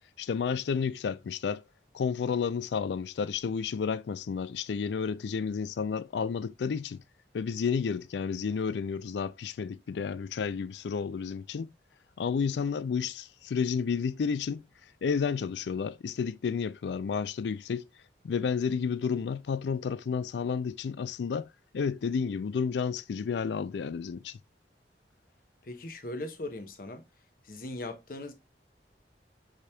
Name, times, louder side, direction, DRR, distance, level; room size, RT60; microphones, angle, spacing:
voice 1, 0.2-1.6 1.9-7.0 7.3-11.7 12.2-14.6 15.0-17.9 18.2-21.5 21.7-24.4, left 6 dB, 75° left, 0.4 m, -31 dB
voice 2, 25.6-27.0 27.4-28.3, left 2 dB, 50° left, 0.9 m, -39 dB
5.0 x 4.3 x 2.2 m
head